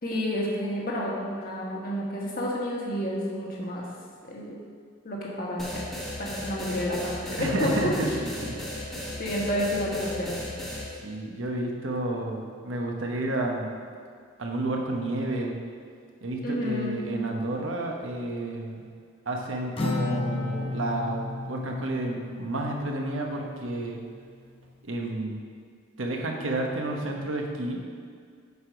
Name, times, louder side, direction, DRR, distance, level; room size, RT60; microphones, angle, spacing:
voice 1, 0.0-3.8 4.2-4.6 5.0-5.8 6.2-8.2 9.2-10.4 16.4-17.0, equal, 45° left, -4 dB, 1.5 m, -30 dB
sound 1, 5.6-10.9, left 1 dB, ahead, 1.0 m, -36 dB
voice 2, 7.4-8.6 8.8-9.0 10.9-13.7 14.4-15.5 16.2-18.8 19.3-24.0 24.8-25.4 26.0-27.8, right 1 dB, 75° right, 1 dB, 1.0 m, -31 dB
Acoustic guitar, 19.8-23.4, left 3 dB, 25° left, 0.7 m, -32 dB
8.1 x 4.8 x 5.1 m, 2.1 s
head